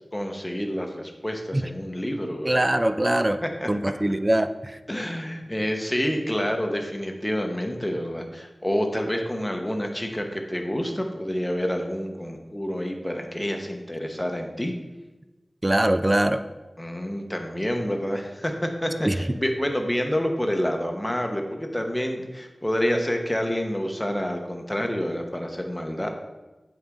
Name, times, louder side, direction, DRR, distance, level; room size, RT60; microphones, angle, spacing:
voice 1, 0.1-2.7 3.4-3.9 4.9-14.7 16.8-26.1, equal, 15° left, 3 dB, 0.8 m, -28 dB
voice 2, 2.4-3.4 3.7-4.8 15.6-16.4 19.0-19.2, right 1 dB, 25° right, 10 dB, 0.3 m, -22 dB
7.7 x 3.9 x 3.6 m, 1.1 s
wide cardioid pair, 60°, 0 cm